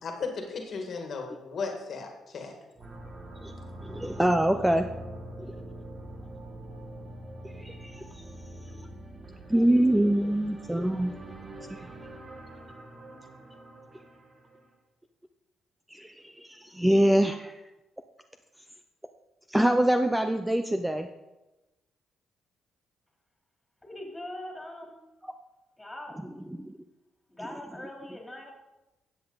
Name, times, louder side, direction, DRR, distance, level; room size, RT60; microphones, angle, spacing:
voice 1, 0.0-2.6, left 4 dB, 55° left, 3 dB, 1.8 m, -35 dB
sound 1, 2.7-14.7, right 1 dB, 30° right, 1.7 m, -44 dB
voice 2, 3.8-4.9 7.6-8.1 9.5-11.1 11.7-11.8 15.9-17.6 19.5-21.1 26.6-26.7, right 1 dB, 5° right, 7 dB, 0.6 m, -24 dB
voice 3, 23.8-25.0 25.8-26.2 27.3-28.5, left 1 dB, 10° left, 0 dB, 3.1 m, -41 dB
13.0 x 8.0 x 4.0 m, 1.0 s
cardioid pair, 90°, 0 cm